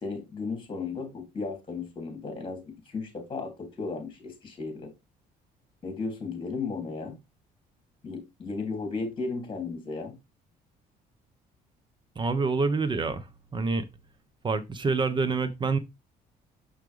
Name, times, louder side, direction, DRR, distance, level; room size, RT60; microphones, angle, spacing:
voice 1, 0.0-4.9 5.8-7.2 8.0-10.2, left 4 dB, 30° left, 3.2 m, -35 dB
voice 2, 12.1-13.8 14.4-15.8, right 4 dB, 30° right, 1.1 m, -27 dB
6.5 x 5.9 x 3.4 m
cardioid pair, 110°, 17 cm